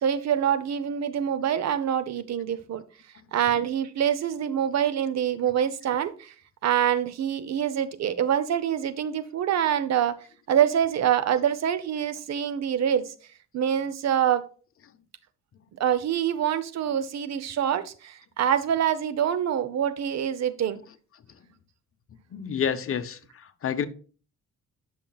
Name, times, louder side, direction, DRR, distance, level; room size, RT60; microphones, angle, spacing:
voice 1, 0.0-2.8 3.3-6.3 6.6-10.2 10.5-13.1 13.5-14.4 15.8-20.8, right 9 dB, 60° right, 0.8 m, -25 dB
voice 2, 22.3-23.2 23.6-23.9, left 7 dB, 45° left, 0.9 m, -27 dB
11.5 x 5.7 x 2.4 m
cardioid pair, 90°, 30 cm